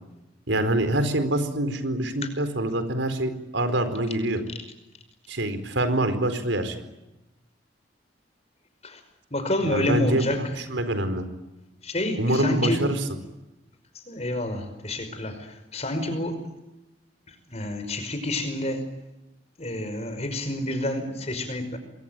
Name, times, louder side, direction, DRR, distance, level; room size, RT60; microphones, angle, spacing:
voice 1, 0.5-4.4 5.3-6.8 9.6-10.3 10.7-11.2 12.2-12.9, right 1 dB, 85° right, 10 dB, 4.4 m, -25 dB
voice 2, 9.3-10.6 11.8-12.9 13.9-16.4 17.3-19.0 19.6-21.8, left 1 dB, 35° left, 9 dB, 5.4 m, -29 dB
28.0 x 22.5 x 9.1 m, 0.96 s
head